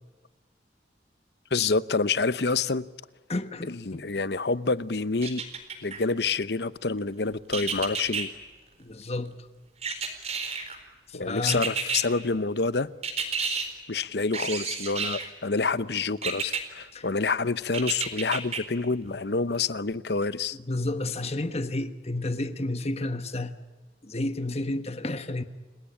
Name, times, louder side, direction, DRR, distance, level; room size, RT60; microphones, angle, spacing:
voice 1, 1.5-2.8 3.7-5.4 5.8-8.3 11.1-12.9 13.9-20.6, left 4 dB, 65° left, 0.9 m, -27 dB
voice 2, 3.3-4.1 8.8-9.5 11.1-11.7 16.9-17.1 20.7-23.5 24.0-25.4, left 2 dB, 35° left, 1.3 m, -31 dB
sound 1, 5.2-6.0 7.5-8.3 9.8-10.8 11.5-12.0 13.0-13.7 14.3-15.3 16.2-16.6 17.7-18.6 19.1-19.2, right 5 dB, 35° right, 4.2 m, -30 dB
29.0 x 17.5 x 10.0 m
head